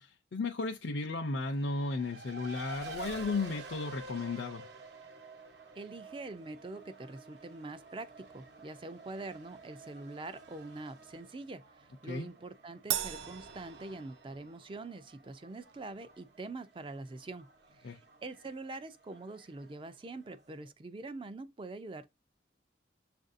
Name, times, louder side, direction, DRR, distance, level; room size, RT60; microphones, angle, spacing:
voice 1, 0.0-4.6 12.1-12.3 17.8-18.0, left 3 dB, 80° left, 0.5 m, -34 dB
Race car auto racing, 1.5-20.7, right 3 dB, 65° right, 0.9 m, -51 dB
voice 2, 5.8-17.5 17.8-22.1, right 2 dB, 30° right, 0.4 m, -44 dB
Crash cymbal, 12.9-14.6, right 11 dB, 90° right, 0.4 m, -37 dB
7.0 x 2.6 x 2.5 m
head